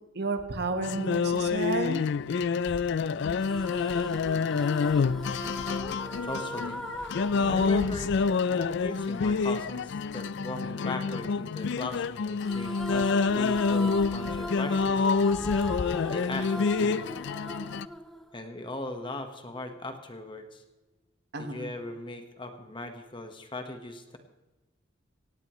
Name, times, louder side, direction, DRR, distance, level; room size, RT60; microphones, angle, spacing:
voice 1, 0.1-2.0 7.4-7.9 21.3-21.7, right 3 dB, 50° right, 7 dB, 1.4 m, -32 dB
sound 1, 0.8-17.9, left 5 dB, 60° left, 0.4 m, -27 dB
sound 2, 3.4-8.9 12.4-18.8, equal, ahead, 0.6 m, -39 dB
voice 2, 6.2-6.8 7.4-8.1 8.5-15.1 16.1-17.1 18.3-20.6 21.4-24.2, left 2 dB, 25° left, 6 dB, 1.3 m, -38 dB
18.0 x 16.0 x 3.1 m, 1.1 s
head